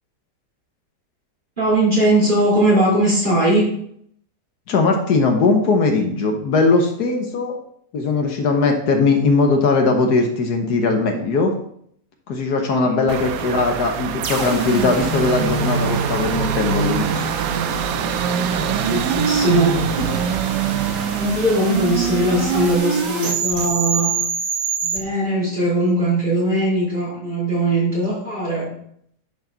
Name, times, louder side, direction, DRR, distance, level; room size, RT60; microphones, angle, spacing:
voice 1, 1.6-3.7 12.7-12.9 18.6-20.2 21.1-24.1 24.8-28.7, right 1 dB, 30° right, -7 dB, 3.8 m, -20 dB
voice 2, 4.7-7.6 7.9-11.5 12.3-17.3, left 3 dB, 70° left, 4 dB, 1.5 m, -19 dB
sound 1, 13.1-22.8, right 11 dB, 70° right, 0.9 m, -27 dB
sound 2, 14.2-25.0, right 5 dB, 90° right, 1.8 m, -24 dB
10.5 x 5.2 x 3.9 m, 0.68 s
omnidirectional pair, 1.8 m